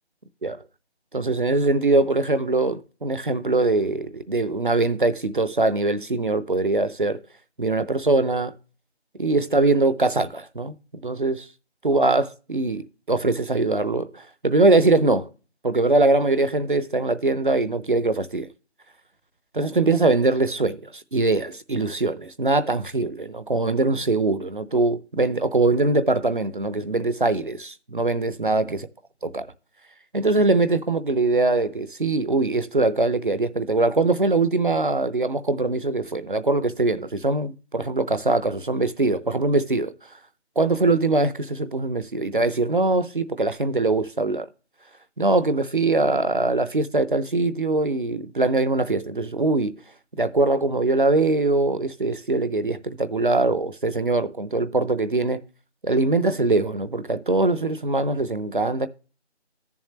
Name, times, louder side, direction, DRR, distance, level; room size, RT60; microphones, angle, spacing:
voice 1, 1.1-7.2 7.6-8.5 9.2-10.8 11.0-11.5 11.8-15.3 15.6-18.5 19.5-28.8 29.3-29.4 30.1-39.9 40.6-44.5 45.2-49.7 50.2-55.4 55.8-58.9, right 2 dB, 50° right, 0.7 m, -22 dB
13.5 x 7.1 x 3.1 m
figure-of-eight pair, 170°, 34 cm